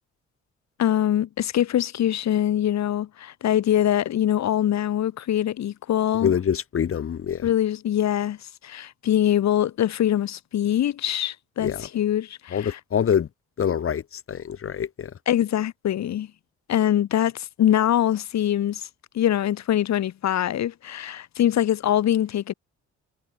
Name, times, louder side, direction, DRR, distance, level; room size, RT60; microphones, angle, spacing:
voice 1, 0.8-6.3 7.4-8.4 8.6-12.8 15.3-16.3 16.7-18.9 19.1-22.5, left 11 dB, 60° left, 1.4 m, -23 dB
voice 2, 6.2-7.5 11.6-11.9 12.5-13.3 13.6-14.0 14.3-15.1, left 8 dB, 45° left, 1.3 m, -25 dB
cardioid pair, 85°, 31 cm